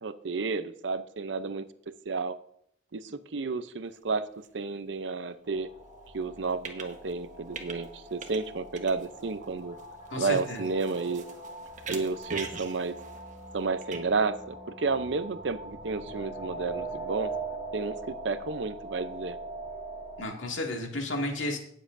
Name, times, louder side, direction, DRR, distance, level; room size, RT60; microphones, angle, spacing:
voice 1, 0.0-1.6 2.1-2.4 2.9-4.2 4.5-5.7 6.1-9.8 10.2-11.3 11.9-13.0 13.5-17.3 17.7-19.4, right 4 dB, 65° right, 12 dB, 0.6 m, -31 dB
sound 1, 3.8-3.9 4.4-4.5 6.2-7.2 7.5-8.5 8.7-14.0, right 5 dB, 40° right, 1.3 m, -43 dB
sound 2, 5.4-20.2, right 2 dB, 20° right, 4.7 m, -41 dB
voice 2, 10.1-10.6 20.2-21.6, left 1 dB, 85° left, 1 dB, 2.2 m, -32 dB
18.5 x 7.5 x 2.6 m, 0.73 s
head